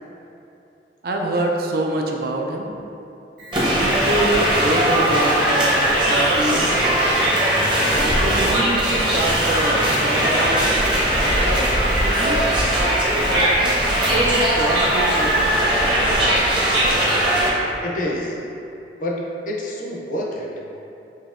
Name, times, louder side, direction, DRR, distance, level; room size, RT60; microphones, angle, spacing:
voice 1, 1.0-2.7 3.8-6.7 7.9-10.6 11.1-12.5 13.2-16.1, right 1 dB, 55° right, 1 dB, 0.4 m, -26 dB
Alarm, 3.4-15.8, equal, 85° right, 1.3 m, -37 dB
sound 1, 3.5-17.5, right 1 dB, 25° right, 0.7 m, -19 dB
voice 2, 17.8-18.4 19.0-20.5, left 1 dB, 50° left, -2 dB, 0.5 m, -27 dB
5.5 x 2.8 x 2.4 m, 2.8 s
head